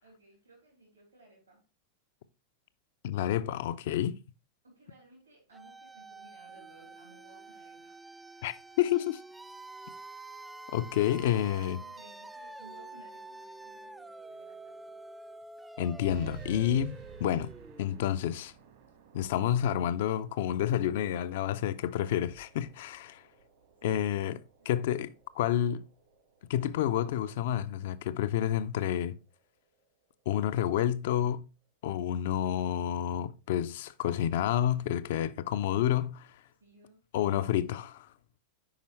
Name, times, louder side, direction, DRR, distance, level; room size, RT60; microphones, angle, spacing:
voice 1, 0.0-1.7 4.6-8.0 11.2-15.0 23.8-24.3 24.6-25.1 36.5-37.6, right 2 dB, 80° right, 3.2 m, -58 dB
voice 2, 3.0-4.2 8.4-9.2 10.7-11.8 15.8-17.5 17.8-18.5 19.1-23.2 23.8-24.4 24.7-25.9 26.5-29.2 30.3-31.5 31.8-36.3 37.1-38.1, left 11 dB, 55° left, 0.5 m, -29 dB
sound 1, 5.5-18.3, right 2 dB, 5° right, 0.3 m, -48 dB
sound 2, 16.0-31.1, right 6 dB, 55° right, 1.4 m, -52 dB
8.6 x 5.4 x 3.1 m
figure-of-eight pair, 90°, 0 cm